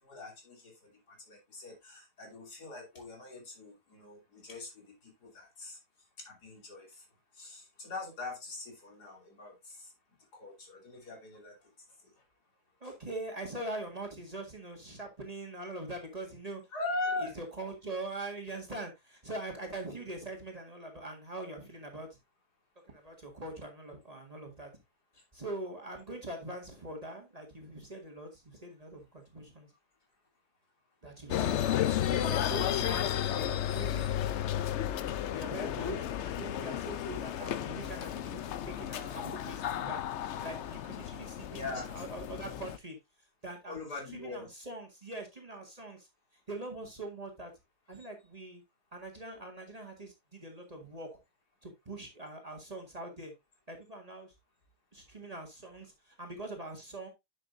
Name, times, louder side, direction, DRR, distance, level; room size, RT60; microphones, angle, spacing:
voice 1, 0.0-5.8 6.2-7.1 7.3-9.9 10.3-11.7 12.0-12.2 12.8-12.9 16.7-17.3 41.5-41.9 43.7-44.5, left 3 dB, 80° left, 1 dB, 3.4 m, -41 dB
voice 2, 12.8-16.6 17.2-22.1 22.9-24.7 25.3-29.7 31.0-31.7 32.0-34.2 35.3-40.0 40.4-43.0 43.4-43.8 44.1-46.1 46.5-47.5 47.9-48.6 48.9-51.1 51.6-53.3 53.7-54.3 54.9-57.1, right 1 dB, 25° right, 2 dB, 1.8 m, -42 dB
sound 1, 31.3-42.8, left 11 dB, 65° left, 0.7 m, -33 dB
9.9 x 6.4 x 2.6 m, 0.21 s
omnidirectional pair, 1.7 m